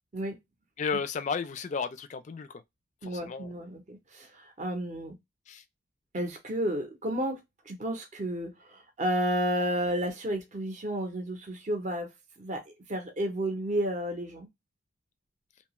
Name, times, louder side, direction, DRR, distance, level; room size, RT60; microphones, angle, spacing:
voice 1, 0.8-2.6 3.0-3.6 5.5-5.6, left 5 dB, 35° left, 0.3 m, -33 dB
voice 2, 3.0-5.1 6.1-7.4 7.7-12.1 12.4-14.5, right 1 dB, 35° right, 0.6 m, -32 dB
2.7 x 2.3 x 2.8 m
head